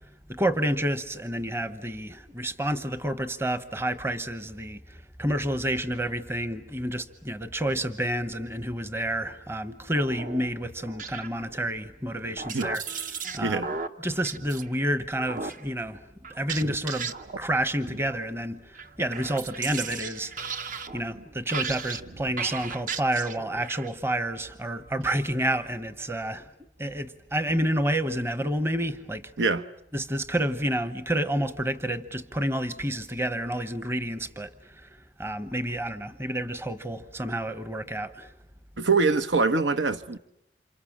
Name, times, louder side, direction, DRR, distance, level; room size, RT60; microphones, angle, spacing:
voice 1, 0.3-12.8 13.1-13.6 14.0-20.5 20.9-26.5 26.8-29.3 29.9-34.9 35.2-38.3, right 1 dB, 15° right, 1.0 m, -29 dB
sound 1, 9.9-11.7 12.1-14.7 15.2-15.6 16.2-17.6 17.9-18.5 18.7-23.9, right 5 dB, 45° right, 1.0 m, -36 dB
voice 2, 38.8-40.2, right 4 dB, 75° right, 1.0 m, -24 dB
29.5 x 27.0 x 7.4 m
head